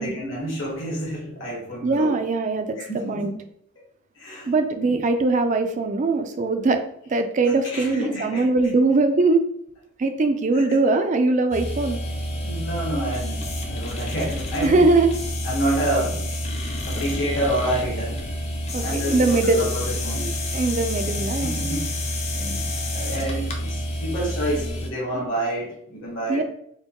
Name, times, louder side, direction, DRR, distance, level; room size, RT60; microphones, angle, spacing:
voice 1, 0.0-2.1 2.8-3.3 4.1-4.5 4.8-5.0 7.6-8.5 10.5-10.8 12.3-14.9 15.4-16.4 16.9-18.2 18.8-20.3 21.1-21.9 22.3-26.4, right 1 dB, 55° left, -5 dB, 1.1 m, -28 dB
voice 2, 1.8-2.8 3.1-3.3 4.5-6.8 7.1-9.5 10.0-12.0 14.6-15.1 18.7-19.7 20.2-21.6 26.3-26.4, right 3 dB, 35° right, 7 dB, 0.3 m, -21 dB
sound 1, 11.5-24.9, left 1 dB, 30° left, 0.4 m, -28 dB
4.4 x 2.2 x 2.9 m, 0.69 s
head